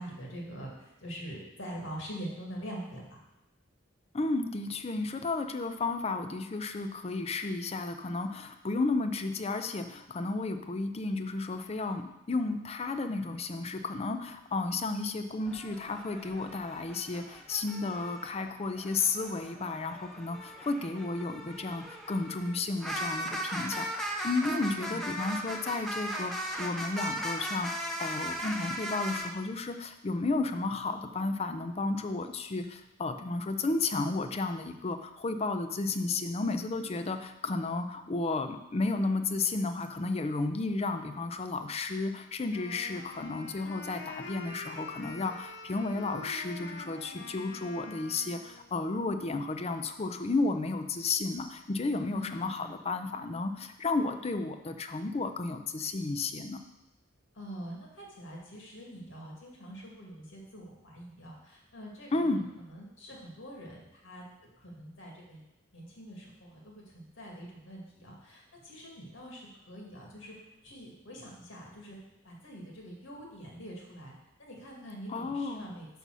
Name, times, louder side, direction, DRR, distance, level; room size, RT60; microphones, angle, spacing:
voice 1, 0.0-3.0 24.7-25.0 52.1-52.7 57.4-62.1 62.7-64.2 64.6-65.4 65.7-70.3 70.6-72.0 72.2-74.1 74.4-75.9, equal, 75° left, -2 dB, 2.0 m, -44 dB
voice 2, 4.1-56.6 62.1-62.5 75.1-75.7, left 3 dB, 30° left, 8 dB, 0.5 m, -33 dB
sound 1, 15.4-18.3 18.8-29.3, equal, ahead, 0.8 m, -38 dB
Wind instrument woodwind instrument, 42.5-48.7, left 3 dB, 60° left, 0.8 m, -45 dB
5.7 x 5.5 x 6.1 m, 0.93 s
head